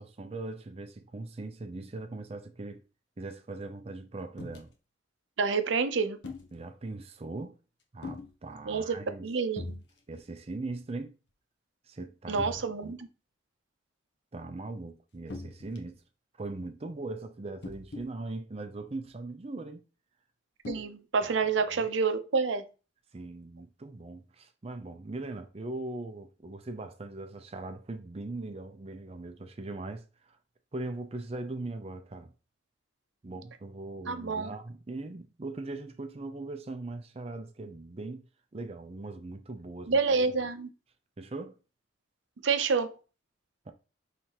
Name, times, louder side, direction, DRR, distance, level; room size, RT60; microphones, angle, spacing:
voice 1, 0.0-2.8 3.2-4.7 6.5-7.6 7.9-9.3 10.1-11.1 11.9-12.4 12.8-13.0 14.3-16.0 16.4-19.8 21.2-21.5 21.8-21.9 23.1-30.4 30.7-32.3 33.2-40.0 41.2-41.6 43.7-43.8, right 2 dB, 30° right, 0.5 m, -40 dB
sound 1, 4.4-4.6 6.2-6.5 8.0-8.3 9.6-9.9 10.1-10.4 10.8-10.9 12.4-12.6 15.3-16.0 17.6-18.1 19.0-19.1 20.6-20.8, left 2 dB, 65° left, 0.9 m, -40 dB
voice 2, 5.4-6.2 8.7-9.0 9.2-9.6 12.3-13.1 20.7-22.6 34.1-34.5 39.9-40.7 42.4-43.0, right 5 dB, 80° right, 0.6 m, -28 dB
5.6 x 3.3 x 2.9 m
head